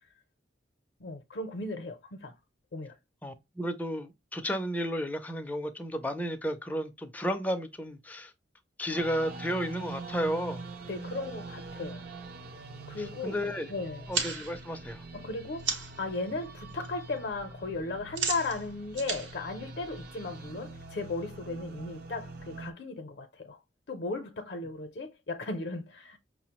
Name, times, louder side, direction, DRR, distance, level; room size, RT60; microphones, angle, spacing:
voice 1, 1.0-2.3 2.7-2.9 10.9-12.1 12.9-13.4 13.7-14.1 15.1-23.6 23.9-26.2, left 3 dB, 60° left, 0.5 m, -36 dB
voice 2, 3.2-8.3 8.8-10.6 13.0-13.7 14.1-15.1, equal, 10° left, 0.4 m, -33 dB
sound 1, 8.9-22.7, right 3 dB, 55° right, 0.5 m, -44 dB
sound 2, 14.1-16.1 16.4-16.9 17.1-20.4, right 5 dB, 80° right, 0.9 m, -36 dB
5.3 x 2.0 x 2.9 m
head